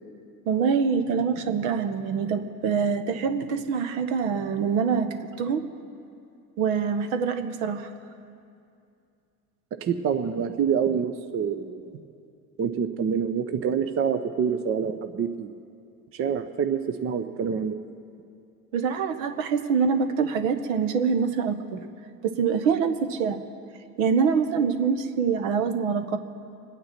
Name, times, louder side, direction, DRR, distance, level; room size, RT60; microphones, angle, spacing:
voice 1, 0.5-5.6 6.6-7.9 18.7-21.8 22.2-23.4 24.0-26.2, right 6 dB, 60° right, 8 dB, 1.1 m, -25 dB
voice 2, 9.8-11.7 12.6-15.5 16.1-17.7, right 7 dB, 30° right, 8 dB, 0.7 m, -26 dB
26.5 x 9.3 x 4.3 m, 2.5 s
figure-of-eight pair, 70°, 46 cm